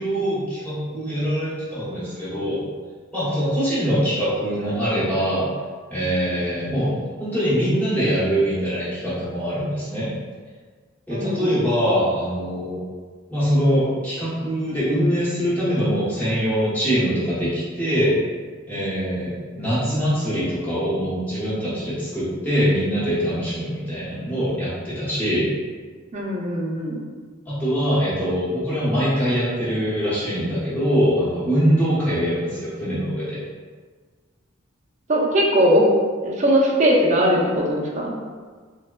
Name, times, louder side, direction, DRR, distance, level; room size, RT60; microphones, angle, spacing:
voice 1, 0.0-2.6 3.1-5.5 5.9-10.1 11.1-12.8 13.3-18.1 18.7-25.5 27.5-33.4, equal, 10° left, -12 dB, 0.9 m, -23 dB
voice 2, 11.1-11.5 26.1-27.0 35.1-35.8 36.2-38.1, equal, 35° right, -3 dB, 0.5 m, -20 dB
3.2 x 2.1 x 2.2 m, 1.5 s
head